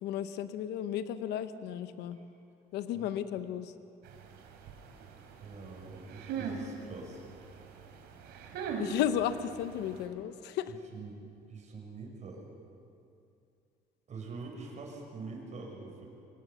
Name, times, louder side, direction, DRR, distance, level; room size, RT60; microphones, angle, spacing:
voice 1, 0.0-2.2 2.7-3.7 8.8-10.7, left 10 dB, 85° left, 11 dB, 0.9 m, -34 dB
sound 1, 4.0-10.1, right 5 dB, 85° right, 3.2 m, -42 dB
voice 2, 5.4-7.2 10.9-12.4 14.1-16.1, right 4 dB, 45° right, 0 dB, 5.9 m, -45 dB
24.5 x 18.5 x 7.1 m, 2.6 s
cardioid pair, 110°, 17 cm